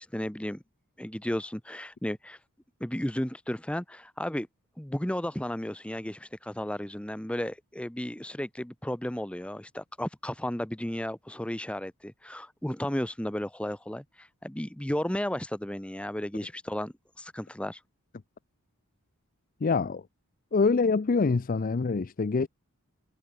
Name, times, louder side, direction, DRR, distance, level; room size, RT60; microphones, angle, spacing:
voice 1, 0.1-0.6 1.0-2.4 2.8-4.5 4.8-17.8, left 1 dB, 5° left, 0.8 m, -34 dB
voice 2, 19.6-20.0 20.5-22.5, left 4 dB, 40° left, 0.4 m, -25 dB
head